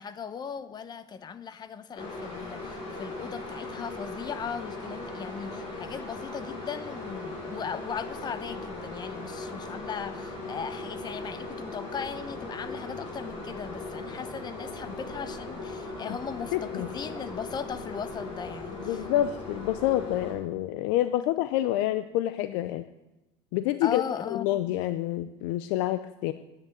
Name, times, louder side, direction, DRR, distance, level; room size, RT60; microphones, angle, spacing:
voice 1, 0.0-19.1 23.8-24.5, left 7 dB, 30° left, 13 dB, 0.9 m, -38 dB
sound 1, 1.9-20.3, left 2 dB, 45° left, 4.6 m, -38 dB
voice 2, 16.5-16.9 18.8-22.8 23.5-26.3, left 14 dB, 75° left, 12 dB, 0.6 m, -28 dB
9.7 x 8.6 x 9.2 m, 1.0 s
supercardioid pair, 125°, 15 cm